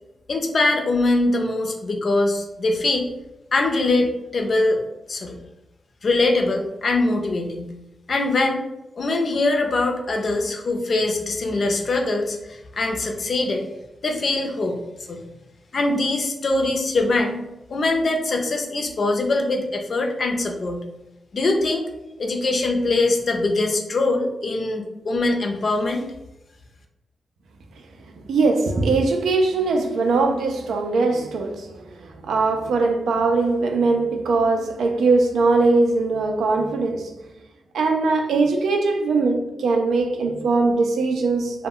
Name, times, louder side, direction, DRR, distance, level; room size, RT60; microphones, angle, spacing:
voice 1, 0.3-3.1 3.5-4.8 5.1-5.4 6.0-7.7 8.1-8.6 9.0-13.7 14.0-14.8 15.1-15.2 15.7-17.4 17.7-20.8 21.3-21.8 22.2-26.0, left 2 dB, 60° left, 0.5 m, -22 dB
voice 2, 28.1-31.7 32.2-37.1 37.7-41.7, right 3 dB, 90° right, 0.4 m, -21 dB
2.1 x 2.1 x 3.6 m
cardioid pair, 65°, 0 cm